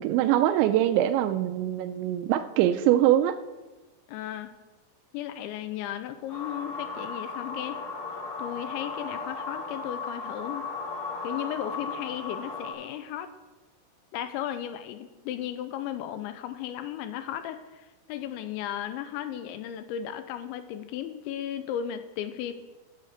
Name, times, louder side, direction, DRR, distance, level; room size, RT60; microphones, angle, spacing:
voice 1, 0.0-3.4, right 12 dB, 80° right, 10 dB, 2.8 m, -23 dB
voice 2, 4.1-4.5 5.1-7.8 8.4-10.7 11.2-13.3 14.1-22.5, left 10 dB, 85° left, 10 dB, 2.9 m, -35 dB
sound 1, 6.3-12.7, left 4 dB, 35° left, 4.1 m, -36 dB
13.5 x 8.3 x 6.5 m, 1.2 s
omnidirectional pair, 5.5 m